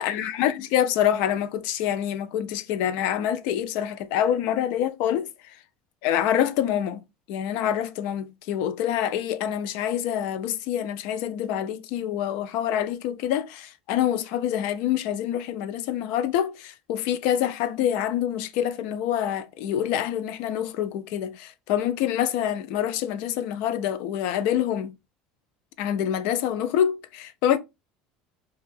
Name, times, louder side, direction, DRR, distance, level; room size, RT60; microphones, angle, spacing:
voice 1, 0.0-5.3 6.0-7.0 7.3-24.9 25.8-27.6, left 10 dB, 60° left, 0.3 m, -26 dB
2.5 x 2.3 x 3.2 m
cardioid pair, 170°, 2 cm